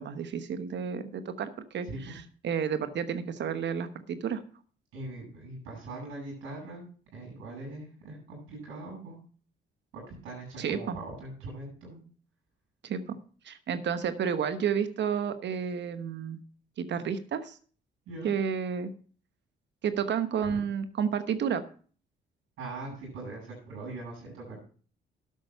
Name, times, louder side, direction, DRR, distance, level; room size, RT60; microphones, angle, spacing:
voice 1, 0.0-4.4 10.6-11.0 12.8-13.2 13.4-16.4 16.8-17.6 18.2-18.9 19.8-21.6, right 7 dB, 65° right, 11 dB, 1.1 m, -31 dB
voice 2, 1.8-2.2 4.9-6.9 7.1-9.2 9.9-12.0 18.1-18.3 20.4-20.6 22.6-24.7, right 2 dB, 90° right, -3 dB, 7.6 m, -41 dB
11.5 x 8.3 x 5.5 m, 0.42 s
cardioid pair, 90°, 20 cm